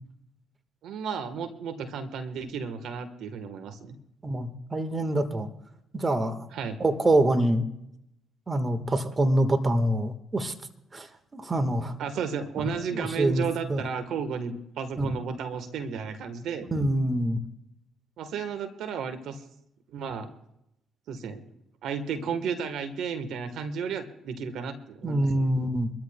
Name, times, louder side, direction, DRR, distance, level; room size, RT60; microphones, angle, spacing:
voice 1, 0.8-4.0 6.5-6.8 12.0-16.7 18.2-19.4 19.9-20.3 21.1-21.4 21.8-25.5, right 6 dB, 70° right, 9 dB, 1.2 m, -33 dB
voice 2, 4.2-5.5 5.9-6.5 6.8-7.7 8.5-10.5 10.9-11.1 11.3-11.9 12.9-13.4 13.7-13.8 15.0-15.1 16.7-17.4 25.0-25.9, right 1 dB, 30° right, 9 dB, 1.4 m, -25 dB
24.5 x 13.5 x 2.2 m, 0.81 s
supercardioid pair, 60°, 0 cm